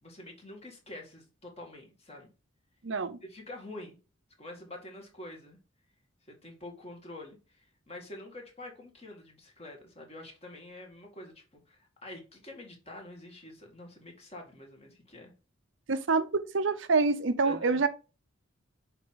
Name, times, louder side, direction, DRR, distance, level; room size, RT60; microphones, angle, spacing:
voice 1, 0.0-2.3 3.2-4.0 4.4-5.6 6.2-15.3 17.4-17.8, left 1 dB, 30° left, 2.1 m, -47 dB
voice 2, 2.8-3.2 15.9-17.9, right 4 dB, 70° right, 0.7 m, -26 dB
6.8 x 4.5 x 3.9 m
head